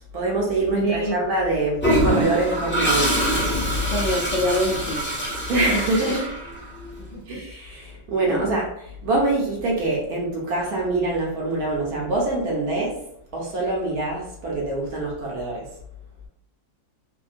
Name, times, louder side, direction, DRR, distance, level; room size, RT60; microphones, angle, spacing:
voice 1, 0.1-3.2 5.5-6.3 7.3-13.0 13.3-15.7, right 2 dB, 60° right, -3 dB, 1.1 m, -24 dB
voice 2, 0.7-1.2 3.9-5.0 7.1-7.2 8.3-8.5, equal, 80° left, -4 dB, 0.6 m, -25 dB
Toilet flush, 1.8-6.9, right 1 dB, 15° left, 0.4 m, -24 dB
3.4 x 2.2 x 2.4 m, 0.74 s
omnidirectional pair, 2.0 m